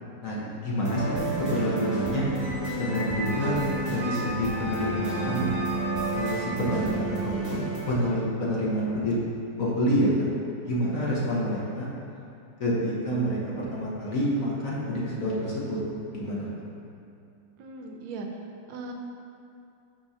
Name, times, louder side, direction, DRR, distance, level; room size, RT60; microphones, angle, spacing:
voice 1, 0.2-2.2 2.7-3.6 3.8-5.5 6.1-9.2 9.6-10.3 10.6-11.9 12.6-15.8 16.1-16.5, equal, 50° left, -6 dB, 1.3 m, -28 dB
sound 1, 0.8-7.9, right 3 dB, 15° right, 1.1 m, -31 dB
Squeak, 2.4-6.9, right 1 dB, 55° right, 1.2 m, -38 dB
Wind instrument woodwind instrument, 2.8-7.1, right 1 dB, 90° left, 2.5 m, -41 dB
voice 2, 17.6-18.9, right 3 dB, 85° right, 2 dB, 1.4 m, -38 dB
5.5 x 3.6 x 5.5 m, 2.6 s
omnidirectional pair, 2.0 m